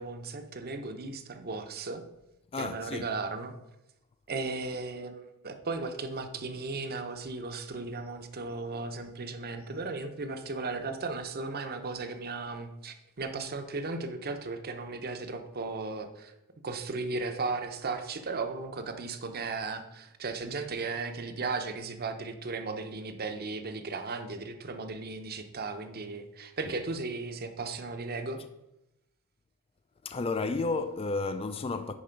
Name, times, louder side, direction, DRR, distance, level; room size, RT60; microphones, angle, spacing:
voice 1, 0.0-2.0 2.6-3.5 4.3-16.3 16.6-28.4, right 3 dB, 45° right, 0.8 m, -36 dB
voice 2, 2.5-3.1 30.0-31.9, left 3 dB, 25° left, 0.4 m, -32 dB
10.0 x 4.3 x 5.2 m
head